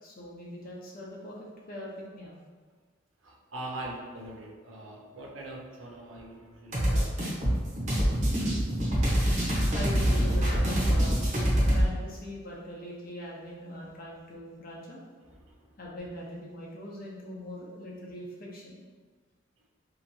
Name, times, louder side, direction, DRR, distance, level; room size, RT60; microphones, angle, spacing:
voice 1, 0.0-2.3 9.7-11.2 11.7-15.0 15.8-18.8, left 1 dB, 50° left, -4 dB, 0.7 m, -41 dB
voice 2, 3.2-7.6, right 1 dB, 80° right, -1 dB, 0.6 m, -42 dB
sound 1, 6.7-11.9, equal, 40° right, 0.7 m, -25 dB
2.8 x 2.5 x 2.6 m, 1.4 s
head